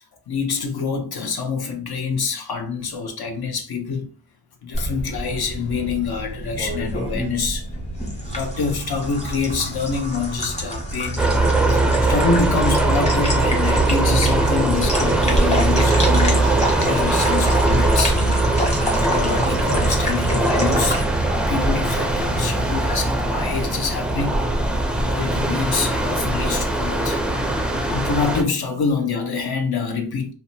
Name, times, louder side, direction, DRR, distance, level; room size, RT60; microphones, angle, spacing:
voice 1, 0.3-4.1 4.6-7.7 8.3-11.3 11.7-27.2 27.9-30.3, left 5 dB, 60° left, 0.8 m, -26 dB
sound 1, 4.7-22.4, equal, 15° left, 1.1 m, -29 dB
sound 2, 11.2-28.4, right 2 dB, ahead, 0.4 m, -20 dB
2.6 x 2.2 x 2.6 m
cardioid pair, 65°, 43 cm